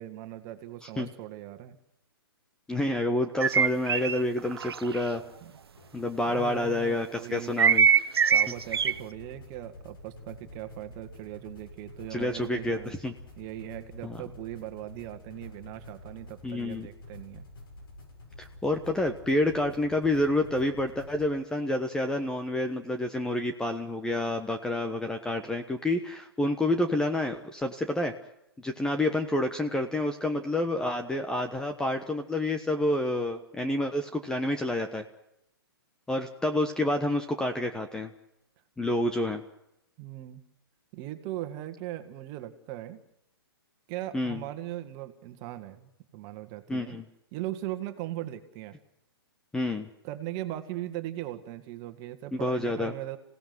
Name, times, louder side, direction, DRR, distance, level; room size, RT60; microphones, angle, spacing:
voice 1, 0.0-1.8 5.4-5.5 6.3-7.6 8.3-13.0 13.4-17.4 40.0-40.4 40.9-43.0 43.9-47.0 47.3-48.8 50.0-53.2, right 14 dB, 30° right, 8 dB, 2.1 m, -39 dB
voice 2, 2.7-5.2 5.9-7.9 12.1-13.1 14.0-14.2 16.4-16.9 18.4-28.1 28.6-35.0 36.1-38.1 38.8-39.4 44.1-44.4 46.7-47.0 49.5-49.9 52.3-52.9, left 1 dB, 5° left, 6 dB, 1.2 m, -28 dB
sound 1, 3.4-5.0 7.6-8.9, right 7 dB, 75° right, 1.2 m, -22 dB
sound 2, 5.1-6.3 8.6-21.3, left 2 dB, 65° left, 7.6 m, -48 dB
26.5 x 17.5 x 7.9 m, 0.83 s
hypercardioid pair, 135°, 13 cm